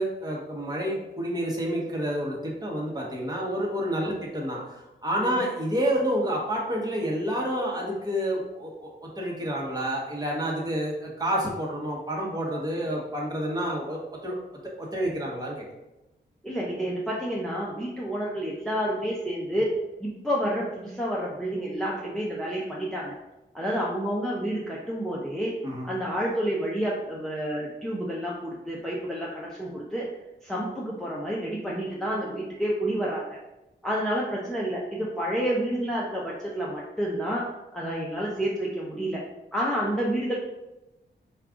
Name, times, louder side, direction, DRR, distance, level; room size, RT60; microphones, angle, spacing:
voice 1, 0.0-4.6 5.0-14.3 14.8-15.6 25.6-25.9, equal, 20° right, -3 dB, 1.0 m, -29 dB
voice 2, 16.4-19.7 20.0-23.2 23.5-25.6 25.8-30.1 30.4-33.4 33.8-37.5 37.7-39.2 39.5-40.4, equal, 5° left, -5 dB, 0.5 m, -29 dB
4.8 x 2.3 x 3.6 m, 0.96 s
wide cardioid pair, 135°, 19 cm